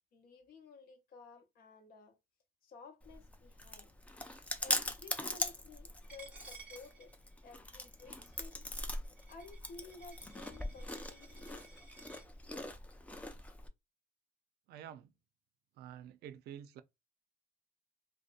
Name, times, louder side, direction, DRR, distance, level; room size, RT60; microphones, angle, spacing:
voice 1, 0.1-2.2 2.6-3.9 4.6-7.1 7.4-8.7 9.3-11.8, left 4 dB, 60° left, 0.9 m, -54 dB
Chewing mastication, 3.0-13.7, left 1 dB, 10° left, 0.4 m, -41 dB
Coin (dropping), 6.1-12.3, right 4 dB, 10° right, 0.9 m, -57 dB
voice 2, 14.7-15.1 15.8-16.8, right 10 dB, 70° right, 0.4 m, -49 dB
2.7 x 2.1 x 2.4 m
cardioid pair, 110°, 17 cm